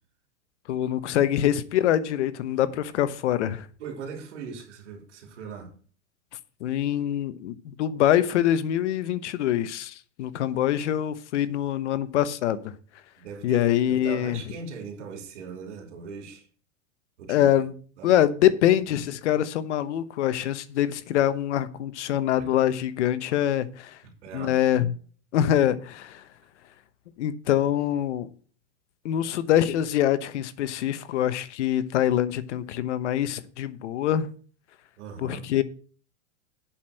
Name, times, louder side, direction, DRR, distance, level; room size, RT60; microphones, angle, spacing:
voice 1, 0.7-3.7 6.6-12.7 13.4-14.4 17.3-17.7 18.0-24.0 24.3-24.9 25.3-26.2 27.2-28.3 29.0-34.3 35.2-35.6, left 11 dB, 70° left, 1.0 m, -24 dB
voice 2, 3.8-5.7 13.2-16.4 17.2-17.6 18.0-18.2 22.4-22.6 24.2-24.9 35.0-35.5, right 5 dB, 75° right, 3.2 m, -39 dB
8.3 x 6.1 x 6.5 m
supercardioid pair, 145°, 36 cm